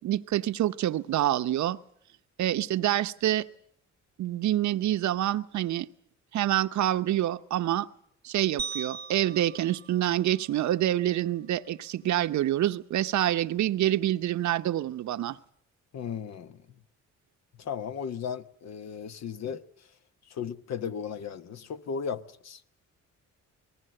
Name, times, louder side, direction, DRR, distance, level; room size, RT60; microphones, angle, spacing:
voice 1, 0.0-1.8 2.4-3.5 4.2-5.9 6.3-7.9 8.2-15.4, right 13 dB, 70° right, 0.9 m, -27 dB
sound 1, 8.6-10.9, right 5 dB, 35° right, 0.9 m, -40 dB
voice 2, 15.9-16.7 17.6-19.9 20.2-22.6, left 7 dB, 60° left, 1.2 m, -36 dB
26.5 x 19.0 x 7.7 m
cardioid pair, 90°, 30 cm